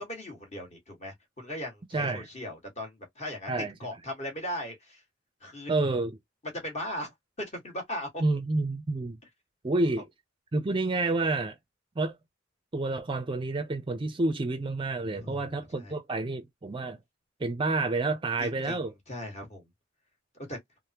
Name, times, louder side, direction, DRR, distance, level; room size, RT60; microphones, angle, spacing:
voice 1, 0.0-5.0 5.4-5.7 6.5-8.2 9.8-9.9 15.1-15.5 15.8-16.0 18.4-18.8 19.1-19.7 20.3-20.6, left 1 dB, 35° left, 1.4 m, -38 dB
voice 2, 1.9-2.2 3.5-3.8 5.7-6.2 8.2-9.2 9.6-10.1 10.5-11.6 12.0-12.2 12.7-17.0 17.4-18.9, right 2 dB, 25° right, 0.4 m, -29 dB
3.3 x 2.0 x 2.8 m
head